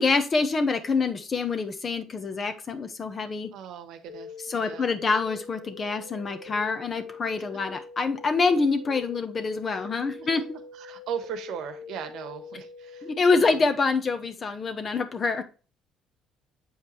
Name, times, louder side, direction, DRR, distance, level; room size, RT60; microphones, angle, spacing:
voice 1, 0.0-3.5 4.5-10.4 13.0-15.4, left 4 dB, 35° left, 9 dB, 1.2 m, -26 dB
voice 2, 3.5-4.9 9.7-9.9 10.2-10.3 10.7-13.7, right 8 dB, 75° right, 9 dB, 1.2 m, -38 dB
sound 1, 4.1-13.6, left 5 dB, 90° left, 0.9 m, -44 dB
7.6 x 5.1 x 3.2 m, 0.35 s
cardioid pair, 90°, 0 cm